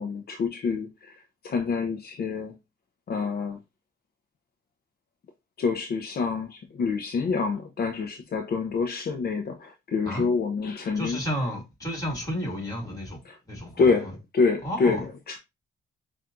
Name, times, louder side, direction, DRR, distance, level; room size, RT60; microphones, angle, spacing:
voice 1, 0.0-2.5 3.1-3.6 5.6-11.2 13.3-13.4 13.7-15.4, left 4 dB, 50° left, 0.6 m, -27 dB
voice 2, 11.0-13.2 13.5-14.1 14.6-15.0, equal, 15° left, 2.1 m, -32 dB
5.7 x 2.5 x 2.5 m
cardioid pair, 85°, 21 cm